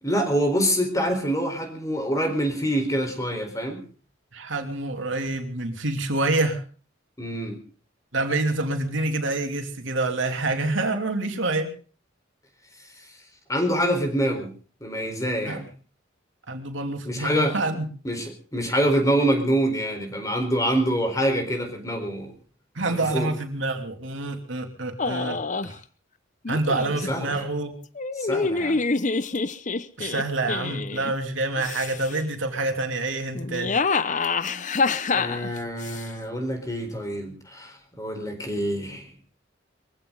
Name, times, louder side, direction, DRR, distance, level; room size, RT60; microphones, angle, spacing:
voice 1, 0.0-3.8 7.2-7.6 13.5-14.5 14.8-15.6 17.0-17.6 18.0-22.3 22.9-23.3 27.1-27.4 28.2-28.8 35.1-39.1, equal, 15° left, 5 dB, 4.3 m, -26 dB
voice 2, 4.3-6.6 8.1-11.7 15.4-15.7 16.5-17.8 22.7-25.7 26.5-27.7 30.0-33.7, right 2 dB, 75° right, 4 dB, 2.9 m, -27 dB
sound 1, 25.0-25.7 26.5-27.1 28.0-31.1 31.6-32.2 33.4-36.0, left 4 dB, 40° left, 0.8 m, -26 dB
22.5 x 16.0 x 3.9 m, 0.40 s
head